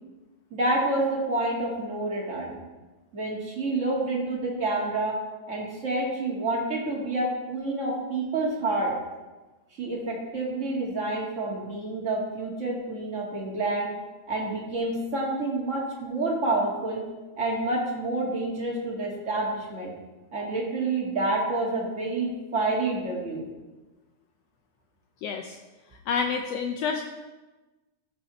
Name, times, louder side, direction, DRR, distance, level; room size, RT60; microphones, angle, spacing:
voice 1, 0.5-2.6 3.1-5.1 5.5-8.9 9.8-13.9 14.3-17.0 17.4-19.9 20.3-23.5, right 2 dB, 30° right, -3 dB, 1.9 m, -28 dB
voice 2, 25.2-25.6 26.1-27.0, left 6 dB, 85° left, 4 dB, 1.4 m, -28 dB
14.5 x 5.5 x 4.2 m, 1.2 s
omnidirectional pair, 3.5 m